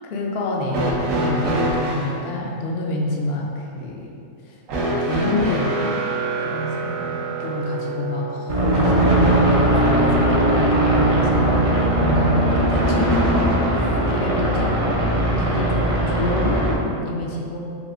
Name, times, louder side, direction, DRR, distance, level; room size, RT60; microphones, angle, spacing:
voice 1, 0.1-4.1 4.9-5.8 6.4-13.5 14.1-17.6, left 1 dB, 65° left, -1 dB, 0.7 m, -27 dB
sound 1, 0.7-2.2 4.7-9.8 12.7-13.8 15.0-15.1 16.2-16.3, right 1 dB, 75° right, 1.1 m, -25 dB
sound 2, 8.5-16.7, right 1 dB, 45° right, 0.4 m, -19 dB
4.1 x 3.5 x 2.4 m, 2.6 s
omnidirectional pair, 1.4 m